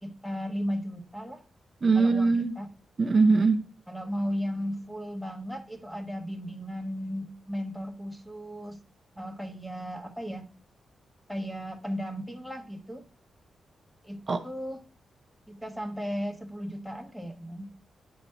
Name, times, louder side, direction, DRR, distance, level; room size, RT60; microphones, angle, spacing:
voice 1, 0.0-1.4 1.9-2.7 3.9-8.8 9.2-10.4 11.3-13.1 14.0-14.8 15.5-17.7, equal, ahead, 3 dB, 1.2 m, -35 dB
voice 2, 1.8-2.5 3.0-3.7 14.3-14.4, right 4 dB, 45° right, 6 dB, 0.6 m, -22 dB
9.4 x 4.1 x 2.8 m, 0.36 s
cardioid pair, 100°, 0 cm